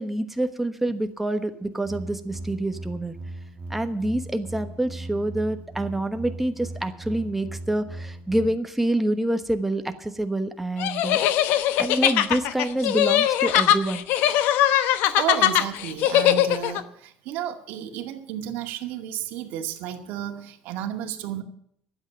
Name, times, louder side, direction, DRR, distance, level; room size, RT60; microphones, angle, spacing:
voice 1, 0.0-3.1 3.7-11.2 11.8-14.1, right 1 dB, 5° right, 8 dB, 1.1 m, -27 dB
sound 1, 1.8-8.5, right 2 dB, 30° right, 1.8 m, -38 dB
sound 2, 10.8-16.8, left 12 dB, 70° left, 0.9 m, -21 dB
voice 2, 15.2-21.4, right 11 dB, 70° right, 4 dB, 2.1 m, -32 dB
12.0 x 8.3 x 9.4 m, 0.69 s
cardioid pair, 140°, 3 cm